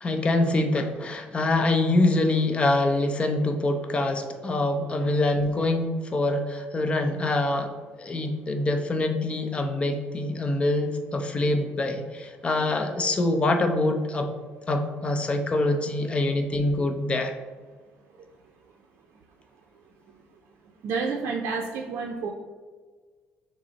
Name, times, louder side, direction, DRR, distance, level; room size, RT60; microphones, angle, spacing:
voice 1, 0.0-7.7 8.0-14.3 14.7-17.4, left 2 dB, 25° left, 5 dB, 0.5 m, -25 dB
voice 2, 20.8-22.3, right 4 dB, 65° right, 0 dB, 0.5 m, -29 dB
6.0 x 2.0 x 3.9 m, 1.4 s
cardioid pair, 105°, 4 cm